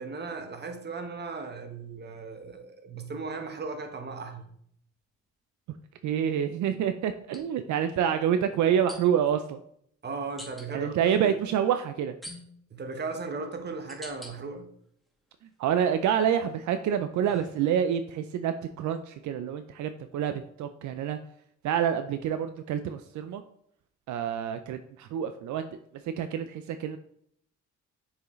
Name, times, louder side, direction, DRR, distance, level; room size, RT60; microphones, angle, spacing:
voice 1, 0.0-4.4 10.0-11.0 11.2-11.3 12.7-14.7, right 4 dB, 35° right, 1.1 m, -37 dB
sound 1, 4.4-4.6 7.2-7.4 8.9-9.3 10.4-10.7 12.2-12.8 13.4-14.3 14.9-15.5 16.0-18.0, left 1 dB, ahead, 1.6 m, -47 dB
voice 2, 6.0-9.6 10.7-12.2 15.6-21.2 21.6-23.4 24.1-25.7 26.0-27.0, right 9 dB, 75° right, 0.5 m, -27 dB
6.5 x 4.8 x 3.1 m
cardioid pair, 90°, 30 cm